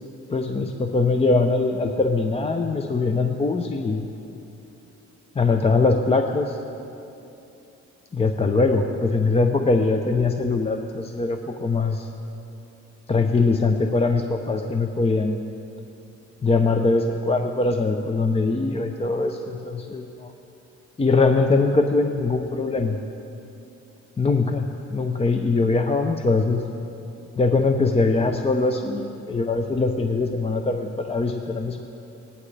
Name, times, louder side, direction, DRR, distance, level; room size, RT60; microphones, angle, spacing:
voice 1, 0.3-4.1 5.4-6.6 8.1-12.1 13.1-15.5 16.4-20.3 21.0-23.0 24.2-26.6 27.4-31.8, left 3 dB, 20° left, 5 dB, 0.6 m, -22 dB
18.0 x 11.0 x 3.3 m, 2.8 s
cardioid pair, 90°, 30 cm